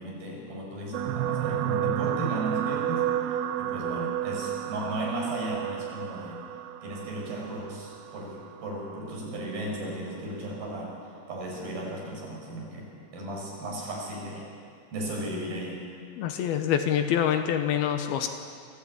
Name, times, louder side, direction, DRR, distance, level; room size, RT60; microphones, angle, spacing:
voice 1, 0.0-6.4 6.8-11.0 11.3-12.9 13.1-14.5 14.9-15.9, right 1 dB, 60° right, -2 dB, 7.0 m, -35 dB
sound 1, 0.9-9.4 10.2-10.4 10.7-10.8, right 12 dB, 80° right, 2.5 m, -31 dB
voice 2, 16.2-18.3, left 9 dB, 75° left, 7 dB, 2.7 m, -26 dB
24.0 x 15.5 x 8.6 m, 2.3 s
omnidirectional pair, 4.8 m